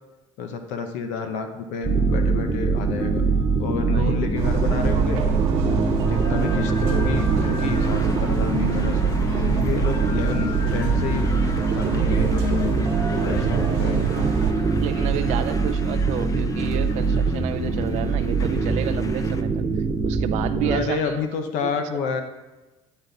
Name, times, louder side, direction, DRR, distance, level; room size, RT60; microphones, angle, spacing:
voice 1, 0.4-3.2 3.6-5.2 5.7-11.2 11.7-12.8 13.1-14.2 20.6-22.2, left 5 dB, 80° left, 6 dB, 0.7 m, -29 dB
sound 1, 1.8-20.8, right 3 dB, 35° right, 1.0 m, -23 dB
voice 2, 3.8-4.2 13.3-13.5 14.8-19.6 20.0-21.3 21.6-21.7, right 12 dB, 70° right, 11 dB, 0.4 m, -31 dB
sound 2, 4.3-14.5, right 7 dB, 90° right, 1.1 m, -26 dB
sound 3, 6.1-19.4, left 5 dB, 30° left, 0.6 m, -40 dB
10.0 x 4.1 x 3.9 m, 1.1 s
cardioid pair, 100°, 12 cm